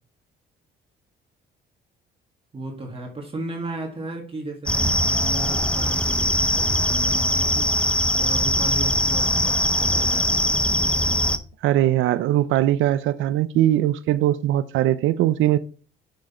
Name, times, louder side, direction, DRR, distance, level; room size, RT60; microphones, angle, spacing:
voice 1, 2.5-10.4, right 2 dB, 30° right, 1.8 m, -34 dB
sound 1, 4.7-11.4, left 1 dB, 5° left, 0.7 m, -21 dB
voice 2, 11.6-15.6, right 13 dB, 80° right, 0.4 m, -20 dB
6.6 x 6.1 x 4.2 m
cardioid pair, 90°, 20 cm